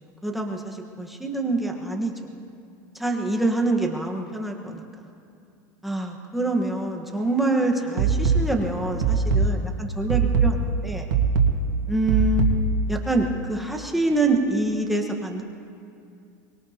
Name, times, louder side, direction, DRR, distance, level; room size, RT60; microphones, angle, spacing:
voice 1, 0.2-2.3 2.9-4.8 5.8-11.1 11.9-12.5 12.9-15.4, right 2 dB, ahead, 0 dB, 1.4 m, -26 dB
sound 1, 8.0-13.0, right 4 dB, 90° right, 1.7 m, -22 dB
24.0 x 21.0 x 2.9 m, 2.5 s
supercardioid pair, 145°, 10 cm